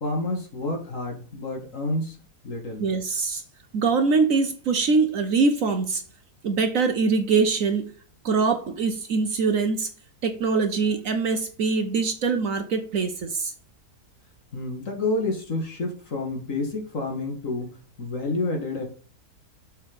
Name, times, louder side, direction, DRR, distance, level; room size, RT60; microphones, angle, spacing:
voice 1, 0.0-2.2 2.4-2.9 14.5-18.8, left 2 dB, 55° left, 1 dB, 2.1 m, -29 dB
voice 2, 2.8-3.4 3.7-6.0 6.4-7.9 8.2-9.9 10.2-13.5, right 4 dB, 60° right, 7 dB, 1.1 m, -23 dB
6.6 x 4.5 x 5.1 m, 0.38 s
omnidirectional pair, 1.7 m